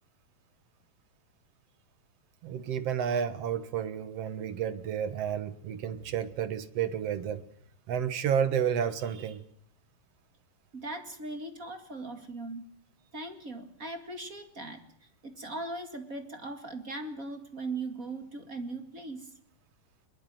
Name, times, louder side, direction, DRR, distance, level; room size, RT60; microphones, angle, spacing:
voice 1, 2.4-7.4 7.9-9.4, right 8 dB, 55° right, 12 dB, 1.8 m, -31 dB
voice 2, 10.7-12.7 13.1-19.3, right 2 dB, 30° right, 7 dB, 1.8 m, -39 dB
23.0 x 21.5 x 7.7 m, 0.65 s
omnidirectional pair, 4.3 m